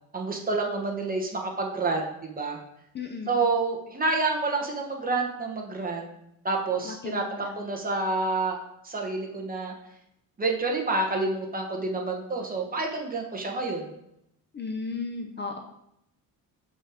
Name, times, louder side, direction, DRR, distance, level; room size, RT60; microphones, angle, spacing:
voice 1, 0.1-2.6 3.3-6.1 6.4-8.6 8.8-9.7 10.4-13.9, right 3 dB, 20° right, 1 dB, 1.2 m, -28 dB
voice 2, 2.9-3.3 7.0-7.5 14.5-15.6, left 4 dB, 30° left, 4 dB, 0.6 m, -34 dB
6.5 x 5.5 x 4.9 m, 0.79 s
cardioid pair, 155°, 38 cm